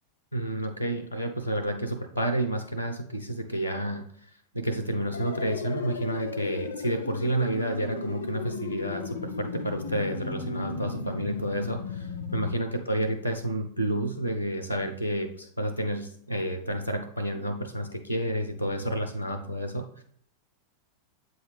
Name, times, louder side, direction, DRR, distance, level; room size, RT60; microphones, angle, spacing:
voice 1, 0.3-4.0 4.5-20.0, right 1 dB, 85° right, 7 dB, 0.5 m, -30 dB
sound 1, 5.1-12.5, left 5 dB, 65° left, 0.4 m, -35 dB
7.7 x 3.9 x 3.3 m, 0.64 s
figure-of-eight pair, 90°, 0 cm